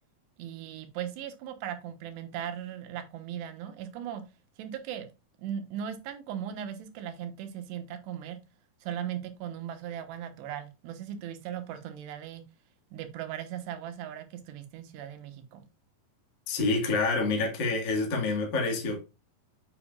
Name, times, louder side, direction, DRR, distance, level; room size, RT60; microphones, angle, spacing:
voice 1, 0.4-4.3 4.6-5.1 5.4-8.4 8.8-12.4 12.9-15.6, right 9 dB, 80° right, 3.2 m, -38 dB
voice 2, 16.5-19.0, left 3 dB, 45° left, 1.6 m, -27 dB
7.6 x 7.1 x 2.4 m
omnidirectional pair, 4.9 m